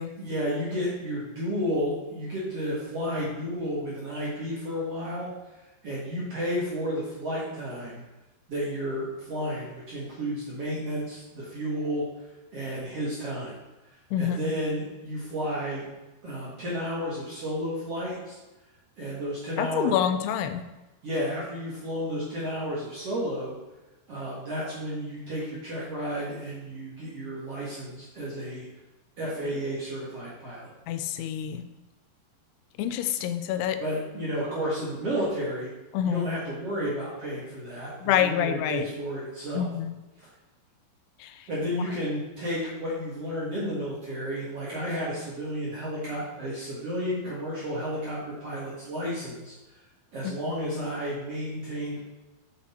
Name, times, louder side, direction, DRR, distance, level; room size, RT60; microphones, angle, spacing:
voice 1, 0.2-5.3 5.8-8.0 8.5-12.1 12.5-13.5 13.8-15.9 16.2-18.4 19.0-20.0 21.0-23.6 24.1-28.7 29.2-30.7 33.8-35.7 36.0-39.7 40.2-40.3 41.5-49.8 50.1-52.0, equal, 55° right, -6 dB, 1.8 m, -32 dB
voice 2, 14.1-14.5 19.6-20.6 30.9-31.7 32.8-33.8 35.9-36.3 38.0-38.8 39.5-40.0 41.2-41.3 50.2-50.3, left 10 dB, 85° left, 9 dB, 2.5 m, -27 dB
6.3 x 6.1 x 4.3 m, 1.1 s
omnidirectional pair, 4.7 m